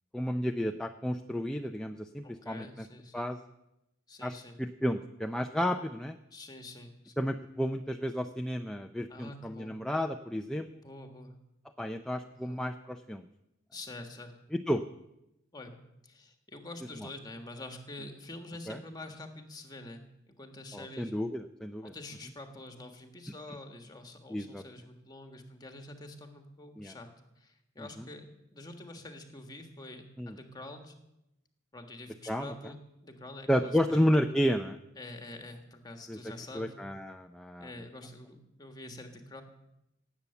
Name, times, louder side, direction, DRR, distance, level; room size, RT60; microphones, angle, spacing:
voice 1, 0.1-2.9 3.1-3.4 4.2-6.2 7.2-10.7 11.8-13.3 14.5-14.8 18.7-18.8 20.7-21.9 24.3-24.6 26.8-26.9 27.8-27.9 30.2-30.4 32.3-32.5 33.5-34.8 36.1-36.2 36.5-37.7, equal, 5° left, 5 dB, 0.4 m, -32 dB
voice 2, 2.2-3.3 4.1-4.6 6.3-7.1 9.1-9.7 10.7-11.4 12.3-12.6 13.7-14.3 15.5-15.8 16.0-20.0 20.3-21.1 21.8-27.1 27.4-28.3 28.5-30.9 31.7-34.0 35.0-36.7 37.6-39.4, left 2 dB, 20° left, 5 dB, 1.5 m, -46 dB
17.5 x 8.4 x 6.9 m, 0.87 s
head